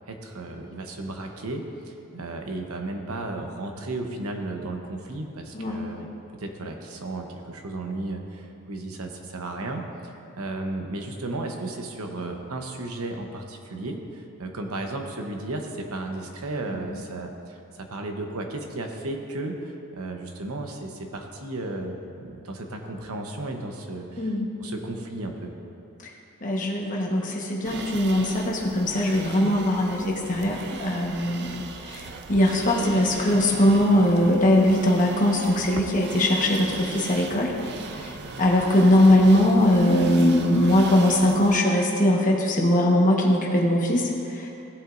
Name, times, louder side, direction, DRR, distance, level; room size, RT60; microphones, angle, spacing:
voice 1, 0.1-19.6 19.9-24.3 24.6-25.5, right 2 dB, 70° right, 3 dB, 1.0 m, -34 dB
voice 2, 5.5-6.1 16.8-17.0 24.2-24.5 26.4-37.5 37.9-44.5, left 1 dB, 35° left, -1 dB, 1.2 m, -21 dB
sound 1, 27.6-41.6, right 4 dB, 50° right, 0.5 m, -38 dB
16.0 x 7.8 x 2.6 m, 2.8 s
head